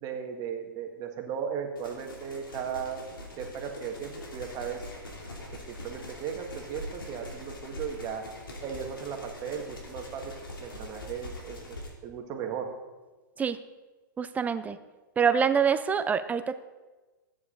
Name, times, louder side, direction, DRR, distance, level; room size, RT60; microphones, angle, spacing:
voice 1, 0.0-3.0 3.4-4.8 5.5-8.2 8.6-12.7, right 7 dB, 35° right, 4 dB, 1.7 m, -36 dB
sound 1, 1.8-11.9, left 1 dB, 85° left, 2.8 m, -43 dB
voice 2, 14.2-14.8 15.2-16.6, right 6 dB, 15° right, 12 dB, 0.5 m, -25 dB
14.0 x 9.5 x 3.9 m, 1.2 s
hypercardioid pair, 120°, 11 cm